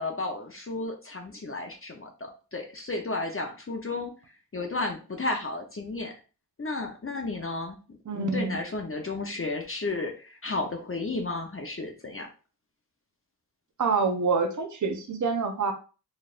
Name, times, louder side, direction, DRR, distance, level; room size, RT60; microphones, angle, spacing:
voice 1, 0.0-4.1 4.5-6.2 6.6-7.8 8.1-12.3, left 2 dB, 35° left, 3 dB, 0.7 m, -33 dB
voice 2, 8.1-8.6 13.8-15.7, right 4 dB, 50° right, 4 dB, 0.8 m, -26 dB
4.1 x 3.2 x 2.5 m, 0.34 s
wide cardioid pair, 80°, 39 cm